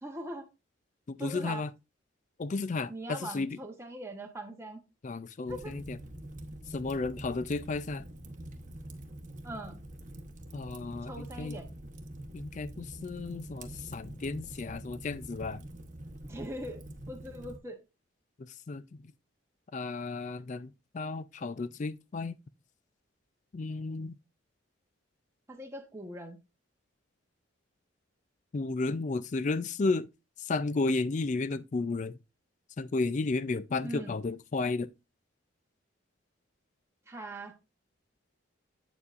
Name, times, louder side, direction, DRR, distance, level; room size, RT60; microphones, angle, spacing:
voice 1, 0.0-0.5 1.2-1.7 2.9-4.8 5.5-5.8 9.4-9.8 11.1-11.7 16.3-17.8 25.5-26.4 33.8-34.2 37.1-37.5, right 1 dB, 15° right, 1.0 m, -41 dB
voice 2, 1.1-1.7 2.4-3.5 5.0-6.0 6.7-8.0 10.5-11.6 12.3-15.6 18.7-18.8 19.7-22.3 23.5-24.1 28.5-30.1 30.5-32.2 32.8-34.9, left 3 dB, 35° left, 0.3 m, -33 dB
Fire, 5.5-17.6, right 1 dB, 40° right, 1.0 m, -45 dB
8.3 x 7.0 x 2.5 m
head